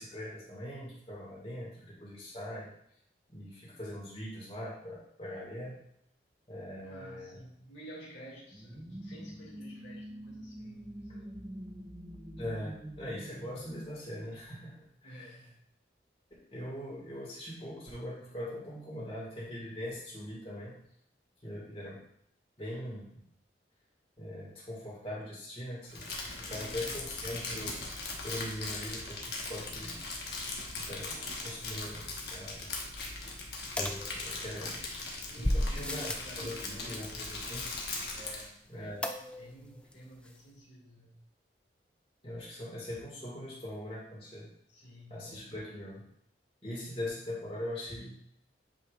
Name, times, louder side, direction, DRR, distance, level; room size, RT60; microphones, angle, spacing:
voice 1, 0.0-2.7 3.3-5.8 6.5-7.4 12.4-15.3 16.5-20.8 21.4-22.0 22.6-23.1 24.2-27.8 28.2-30.0 30.8-32.7 33.2-33.3 34.2-34.8 35.4-37.7 38.7-39.0 42.2-44.5 45.1-46.0 46.6-48.1, left 1 dB, 30° left, -6 dB, 2.1 m, -41 dB
voice 2, 6.8-11.4 15.0-15.7 26.5-27.0 35.2-37.2 38.1-39.1 39.4-41.2 44.7-45.5, right 1 dB, 90° left, -6 dB, 2.1 m, -51 dB
sound 1, 8.5-15.0, right 1 dB, 20° right, 0.8 m, -46 dB
Crumpling crinkling, 25.9-38.5, left 3 dB, 65° left, 1.3 m, -39 dB
sound 2, 33.8-34.7 35.4-36.4 39.0-39.6 39.9-40.0 40.3-40.4, left 1 dB, 5° left, 0.3 m, -33 dB
8.5 x 5.1 x 2.5 m, 0.71 s
head